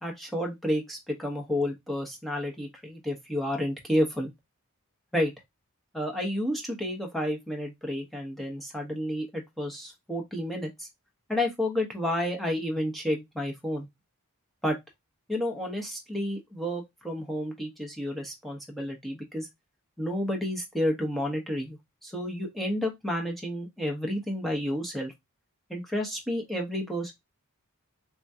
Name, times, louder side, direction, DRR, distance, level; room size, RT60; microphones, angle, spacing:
voice 1, 0.0-4.3 5.1-5.3 5.9-10.9 11.3-13.9 14.6-14.8 15.3-19.5 20.0-25.1 25.7-27.1, left 1 dB, ahead, 1.1 m, -31 dB
3.5 x 3.0 x 2.7 m
head